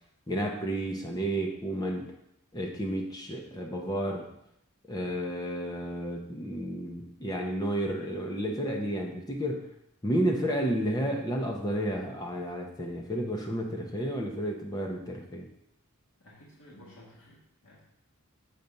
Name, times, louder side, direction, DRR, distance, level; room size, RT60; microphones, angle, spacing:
voice 1, 0.3-2.1 2.5-4.3 4.9-9.7 10.0-15.5, right 1 dB, 15° left, 1 dB, 0.7 m, -31 dB
voice 2, 16.2-17.8, left 1 dB, 80° left, -5 dB, 1.6 m, -54 dB
6.9 x 4.2 x 5.2 m, 0.79 s
head